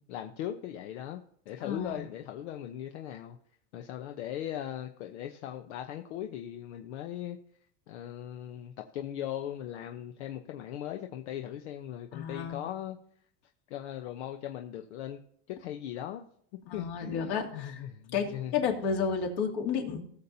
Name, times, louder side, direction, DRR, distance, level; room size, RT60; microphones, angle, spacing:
voice 1, 0.1-1.2 1.5-3.4 3.7-7.4 7.9-13.0 13.7-15.2 15.5-16.3 16.7-18.5, left 11 dB, 85° left, 5 dB, 0.9 m, -39 dB
voice 2, 1.6-2.0 12.1-12.6 16.7-17.8 18.1-20.0, left 6 dB, 65° left, 2 dB, 2.5 m, -31 dB
18.0 x 7.1 x 2.8 m, 0.64 s
supercardioid pair, 140°, 34 cm